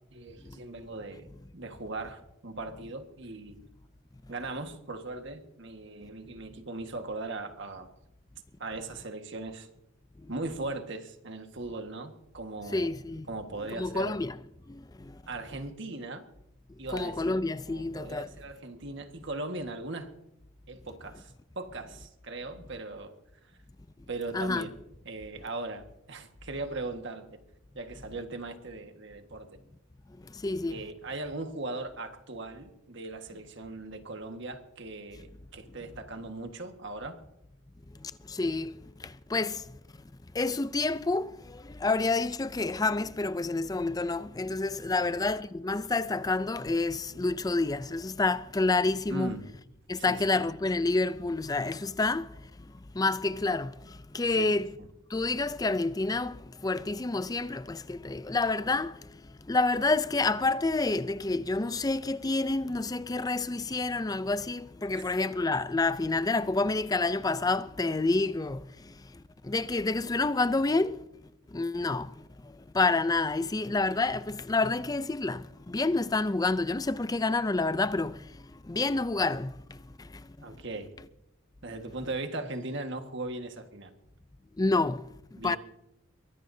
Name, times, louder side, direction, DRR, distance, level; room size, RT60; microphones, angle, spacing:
voice 1, 0.1-3.6 4.3-7.9 8.6-9.7 10.3-12.9 13.3-14.2 15.3-16.2 16.8-17.4 17.7-20.1 20.7-23.1 24.1-24.7 25.0-27.4 27.7-29.6 30.7-37.2 44.9-45.1 49.1-49.5 50.0-50.4 54.4-54.5 64.9-65.0 80.4-80.9 81.6-83.9 85.4-85.6, right 2 dB, 55° right, 1.6 m, -39 dB
voice 2, 12.7-13.3 13.6-14.4 14.7-15.2 16.9-18.3 24.3-24.7 30.2-30.8 37.9-39.8 40.3-49.4 49.9-54.7 55.1-71.0 71.5-80.6 84.6-85.6, left 3 dB, 20° left, 0.4 m, -29 dB
23.0 x 17.0 x 2.7 m
head